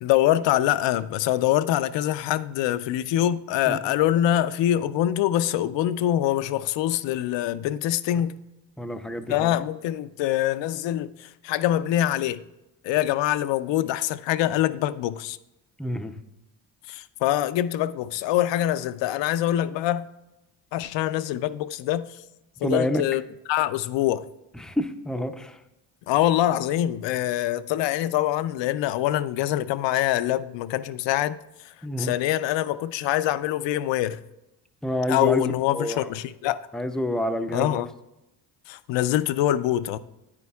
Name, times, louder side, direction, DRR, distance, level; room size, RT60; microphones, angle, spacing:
voice 1, 0.0-8.4 9.3-12.4 12.8-15.4 16.9-20.1 20.7-22.2 22.6-23.2 23.5-24.3 26.1-31.4 31.6-34.2 35.1-36.6 37.5-37.9 38.7-40.0, left 13 dB, 65° left, 0.5 m, -24 dB
voice 2, 8.8-9.6 15.8-16.2 22.6-23.0 24.5-25.6 31.8-32.1 34.8-36.1 36.7-37.8, equal, ahead, 0.5 m, -28 dB
9.7 x 9.2 x 2.3 m
supercardioid pair, 70°, 47 cm